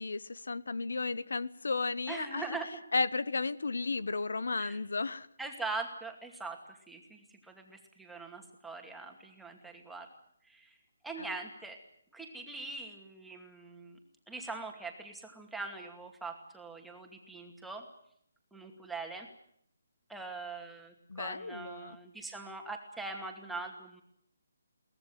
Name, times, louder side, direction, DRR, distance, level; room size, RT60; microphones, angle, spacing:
voice 1, 0.0-2.6 2.9-5.3 11.2-11.3 21.1-22.0, left 3 dB, 80° left, 18 dB, 1.1 m, -34 dB
voice 2, 2.1-2.8 4.6-4.8 5.4-10.1 10.4-10.7 11.0-11.8 12.1-14.0 14.3-17.9 18.5-19.3 20.1-24.0, right 3 dB, ahead, 2 dB, 2.4 m, -42 dB
23.0 x 18.0 x 9.4 m, 0.70 s
hypercardioid pair, 170°, 0 cm